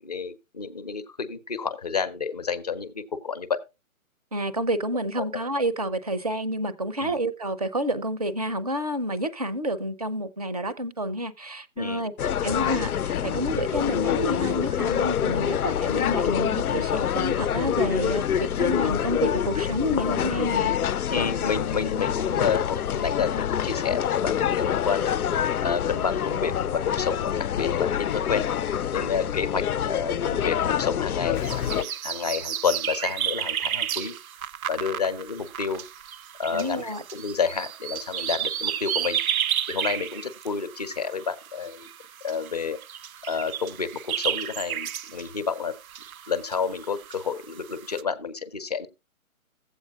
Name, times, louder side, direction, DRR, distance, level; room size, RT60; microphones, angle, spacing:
voice 1, 0.0-3.6 5.2-5.3 7.0-7.2 11.8-12.3 21.1-25.2 25.6-34.1 34.7-35.8 36.4-39.2 39.7-41.9 42.2-42.8 43.2-45.7 46.3-48.9, left 6 dB, 30° left, 0.6 m, -30 dB
voice 2, 4.3-12.1 12.4-20.7 36.5-37.0, right 1 dB, 25° right, 0.5 m, -29 dB
sound 1, 12.2-31.8, left 9 dB, 90° left, 0.6 m, -26 dB
sound 2, 31.4-48.0, right 10 dB, 70° right, 0.6 m, -32 dB
15.0 x 8.2 x 2.3 m
hypercardioid pair, 155°, 43 cm